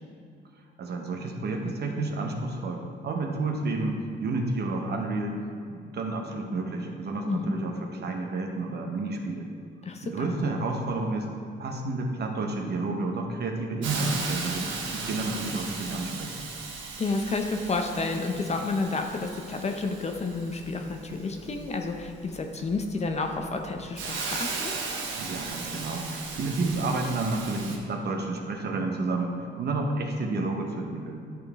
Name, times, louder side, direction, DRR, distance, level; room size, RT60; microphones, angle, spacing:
voice 1, 0.8-9.5 10.0-11.3 11.6-16.4 25.1-31.2, right 2 dB, 55° right, 2 dB, 0.9 m, -30 dB
voice 2, 9.8-10.3 17.0-24.7, left 3 dB, 35° left, 4 dB, 0.6 m, -30 dB
Hiss, 13.8-27.8, right 4 dB, 75° right, 1.0 m, -37 dB
10.5 x 3.6 x 3.5 m, 2.4 s
cardioid pair, 90°, 20 cm